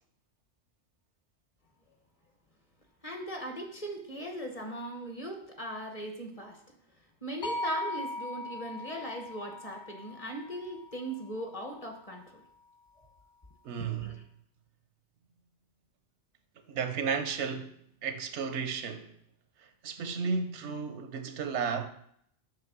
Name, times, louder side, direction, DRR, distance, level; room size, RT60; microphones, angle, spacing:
voice 1, 3.0-6.6 7.2-12.4 13.8-14.2, right 1 dB, 35° left, 1.0 m, -39 dB
sound 1, 7.4-11.6, left 1 dB, 85° left, 1.4 m, -39 dB
voice 2, 13.6-14.1 16.7-19.1 19.6-21.9, right 5 dB, 80° right, 0.9 m, -33 dB
7.1 x 3.2 x 6.0 m
omnidirectional pair, 1.2 m